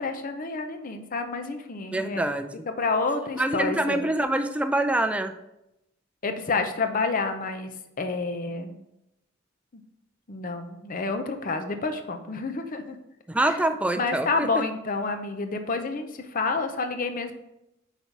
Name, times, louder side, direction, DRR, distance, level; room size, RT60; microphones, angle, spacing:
voice 1, 0.0-2.3 2.8-4.1 6.2-8.8 10.3-13.0 13.4-13.6 13.9-17.4, left 3 dB, 45° left, 7 dB, 0.6 m, -29 dB
voice 2, 1.9-2.7 3.4-5.3 13.3-14.5, right 1 dB, 5° right, 8 dB, 0.4 m, -25 dB
5.5 x 4.1 x 4.5 m, 0.86 s
head